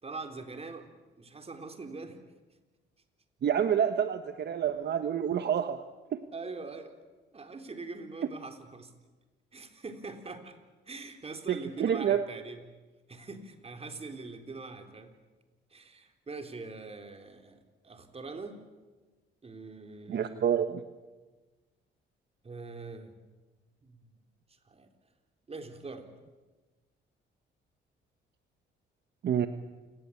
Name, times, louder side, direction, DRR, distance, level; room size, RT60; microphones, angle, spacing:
voice 1, 0.0-0.9 1.2-2.2 6.3-6.9 7.3-8.9 9.5-10.6 10.9-12.6 13.1-15.1 15.7-18.6 19.4-20.5 22.4-23.2 23.8-24.1 24.7-24.9 25.5-26.1, right 3 dB, 30° right, 6 dB, 3.7 m, -43 dB
voice 2, 3.4-5.8 6.1-6.2 11.5-12.2 20.1-20.8 29.2-29.5, right 8 dB, 60° right, 9 dB, 1.2 m, -28 dB
28.0 x 19.0 x 8.5 m, 1.3 s
cardioid pair, 90°, 20 cm